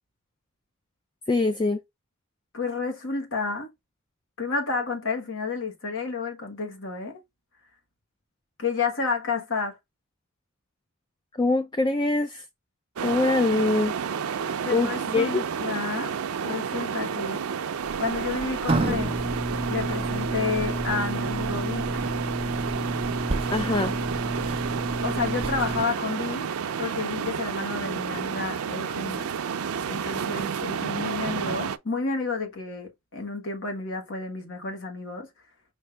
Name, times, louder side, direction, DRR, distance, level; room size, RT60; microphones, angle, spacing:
voice 1, 1.3-1.8 11.4-12.5 13.0-14.0 14.7-15.4 23.5-23.9, left 3 dB, 20° left, 0.4 m, -24 dB
voice 2, 2.5-3.7 4.4-7.2 8.6-9.8 14.6-16.2 16.4-17.4 18.0-19.2 19.7-22.1 25.0-26.5 26.8-29.3 29.8-35.3, left 4 dB, 60° left, 1.4 m, -30 dB
sound 1, 13.0-31.8, right 7 dB, 75° right, 0.5 m, -31 dB
sound 2, 17.8-25.8, right 1 dB, 25° right, 0.6 m, -30 dB
5.4 x 2.7 x 3.3 m
head